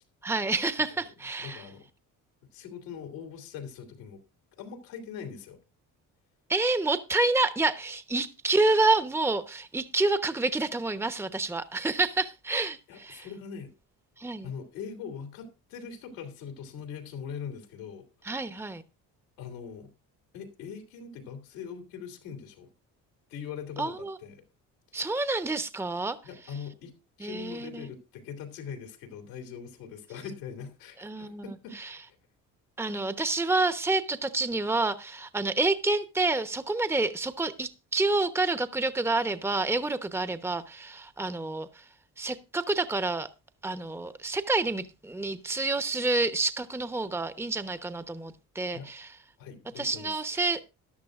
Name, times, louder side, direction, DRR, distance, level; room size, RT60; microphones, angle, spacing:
voice 1, 0.2-1.7 6.5-13.3 14.2-14.5 18.2-18.8 23.8-24.2 24.9-26.2 27.2-27.9 31.0-32.0 32.8-41.8 42.2-43.3 43.6-49.2 49.8-50.6, right 3 dB, 5° right, 12 dB, 1.0 m, -28 dB
voice 2, 1.4-1.8 2.5-4.2 4.6-5.6 12.9-13.7 14.4-18.0 19.4-19.9 20.3-22.7 23.3-24.4 26.2-32.0 48.7-48.9 49.4-50.5, left 7 dB, 85° left, 5 dB, 2.7 m, -42 dB
14.5 x 11.0 x 2.5 m, 0.28 s
hypercardioid pair, 60°, 41 cm